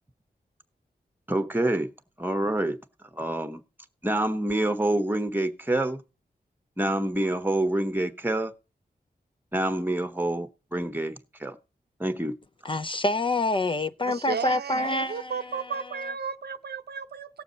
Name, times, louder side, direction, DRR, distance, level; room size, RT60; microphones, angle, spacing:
voice 1, 1.3-1.9 2.2-2.8 3.1-3.6 4.0-6.0 6.8-8.5 9.5-11.6 12.0-12.3, right 1 dB, 10° right, 1.1 m, -27 dB
voice 2, 12.6-15.6, left 2 dB, 30° left, 0.5 m, -27 dB
voice 3, 14.0-17.4, right 6 dB, 75° right, 0.6 m, -34 dB
17.0 x 7.0 x 4.0 m
wide cardioid pair, 80°, 17 cm